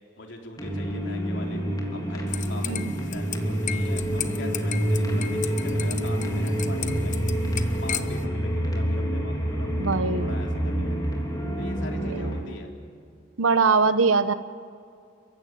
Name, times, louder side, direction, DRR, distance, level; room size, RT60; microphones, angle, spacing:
voice 1, 0.2-1.6 1.9-7.3 7.8-9.7 10.2-11.0 11.6-12.7, left 2 dB, 60° left, 1 dB, 3.5 m, -42 dB
sound 1, 0.6-12.4, equal, 20° left, 3.5 m, -27 dB
sound 2, 2.3-8.2, left 9 dB, 40° left, 1.0 m, -36 dB
voice 2, 9.8-10.3 12.1-12.2 13.4-14.3, right 4 dB, 90° right, 12 dB, 1.1 m, -22 dB
30.0 x 15.5 x 9.2 m, 2.4 s
head